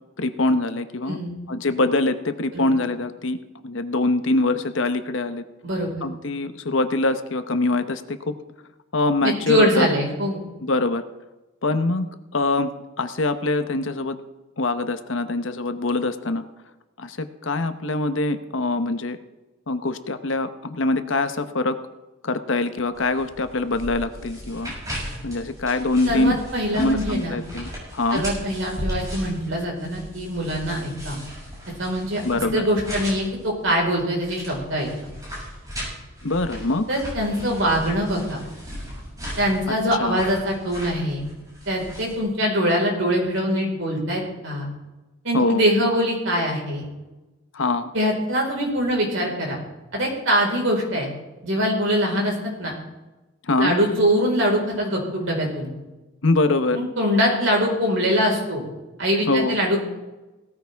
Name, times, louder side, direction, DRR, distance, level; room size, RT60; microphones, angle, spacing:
voice 1, 0.2-1.2 1.5-3.4 3.6-5.4 6.0-8.3 8.9-9.9 10.6-11.0 11.6-12.1 12.3-12.7 13.0-14.2 14.6-16.4 17.0-19.2 19.7-21.8 22.2-24.7 25.2-26.4 26.7-28.2 32.2-32.6 36.2-36.8 39.7-40.2 45.3-45.6 47.5-47.9 53.5-53.8 56.2-56.8 59.3-59.6, left 2 dB, 65° left, 10 dB, 0.9 m, -23 dB
voice 2, 1.1-1.4 2.5-2.6 5.6-6.1 9.2-10.4 26.1-27.4 28.1-31.2 31.8-34.9 36.9-38.4 39.4-41.2 41.7-44.7 45.2-46.8 47.9-49.6 49.9-51.1 51.4-52.7 53.6-55.7 56.7-58.6 59.0-59.8, equal, 65° right, -1 dB, 4.6 m, -23 dB
sound 1, 22.9-42.2, equal, 15° right, 6.3 m, -37 dB
17.5 x 14.0 x 3.5 m, 1.1 s
head